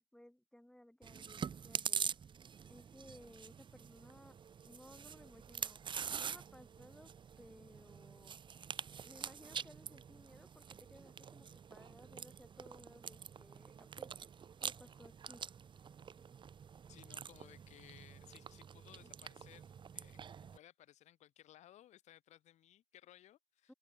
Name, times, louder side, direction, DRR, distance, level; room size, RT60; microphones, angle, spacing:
voice 1, 0.0-2.1 2.7-4.4 4.7-5.8 6.1-7.1 7.4-14.1 14.6-15.4 15.8-16.4 19.0-19.1 23.7-23.8, left 1 dB, 5° left, 1.9 m, -60 dB
Chewing mastication, 1.0-20.6, right 7 dB, 40° right, 0.9 m, -46 dB
voice 2, 16.9-23.7, left 13 dB, 60° left, 2.3 m, -61 dB
hypercardioid pair, 65°, 13 cm